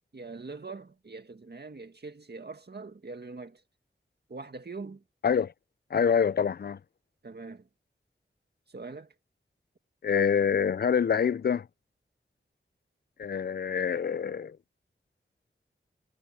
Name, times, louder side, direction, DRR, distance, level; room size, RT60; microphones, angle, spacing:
voice 1, 0.1-3.6 4.3-5.0 7.2-7.7 8.7-9.1, right 3 dB, 55° right, 2.0 m, -42 dB
voice 2, 5.9-6.8 10.0-11.7 13.2-14.6, left 7 dB, 50° left, 0.4 m, -26 dB
wide cardioid pair, 60°, 21 cm